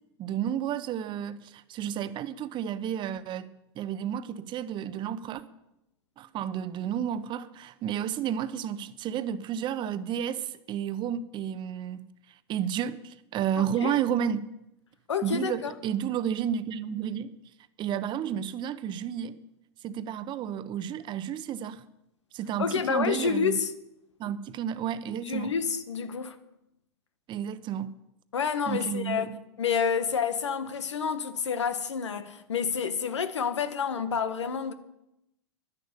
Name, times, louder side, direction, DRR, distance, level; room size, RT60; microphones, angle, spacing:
voice 1, 0.2-5.4 6.2-12.1 12.5-14.5 15.2-17.3 17.8-19.4 19.8-21.8 22.3-23.6 24.2-25.5 27.3-27.9 28.7-29.4, right 9 dB, 35° right, 1.0 m, -31 dB
voice 2, 13.6-13.9 15.1-15.7 22.6-23.7 25.2-26.4 28.3-34.7, left 6 dB, 85° left, 1.5 m, -29 dB
11.0 x 10.5 x 8.4 m
hypercardioid pair, 110°, 15 cm